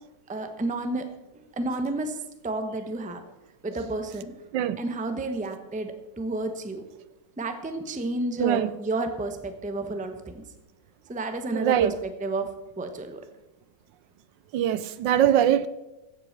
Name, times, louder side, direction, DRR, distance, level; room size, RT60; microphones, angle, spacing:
voice 1, 0.3-1.1 1.3-3.2 3.6-4.3 4.8-6.8 7.4-10.4 11.1-13.2, right 2 dB, 5° right, 0.6 m, -31 dB
voice 2, 8.4-8.7 11.5-11.9 14.5-15.7, right 10 dB, 75° right, 1.2 m, -22 dB
15.0 x 7.9 x 6.6 m
omnidirectional pair, 2.1 m